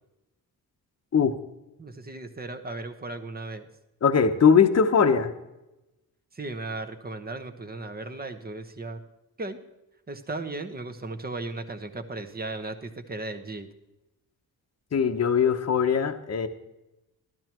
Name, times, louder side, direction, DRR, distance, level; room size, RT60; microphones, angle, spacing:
voice 1, 1.8-3.7 6.3-9.0 9.4-9.6 10.1-13.7, right 2 dB, 25° right, 7 dB, 1.1 m, -36 dB
voice 2, 4.0-5.3 14.9-16.5, left 6 dB, 45° left, 7 dB, 1.0 m, -20 dB
14.0 x 12.5 x 3.0 m, 0.95 s
cardioid pair, 95°, 37 cm